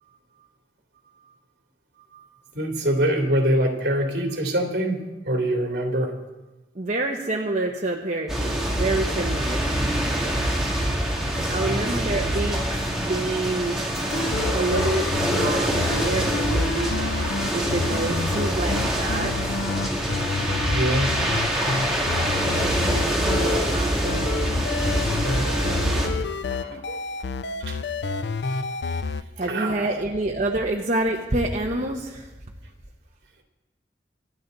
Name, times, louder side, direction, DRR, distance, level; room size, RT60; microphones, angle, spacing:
voice 1, 2.5-6.1 11.4-11.9 20.7-21.1 25.4-25.7 26.7-27.0 27.6-27.8 29.5-29.9, right 1 dB, 70° right, 1 dB, 3.0 m, -25 dB
voice 2, 6.7-9.6 11.5-13.8 14.5-17.1 17.5-19.4 22.2-24.3 29.4-32.3, right 2 dB, 45° right, 0 dB, 1.0 m, -28 dB
sound 1, 8.3-26.1, right 1 dB, 5° right, 2.4 m, -25 dB
sound 2, 14.0-23.8 24.0-29.2, left 4 dB, 80° left, 0.5 m, -29 dB
25.5 x 9.7 x 4.0 m, 1.1 s
head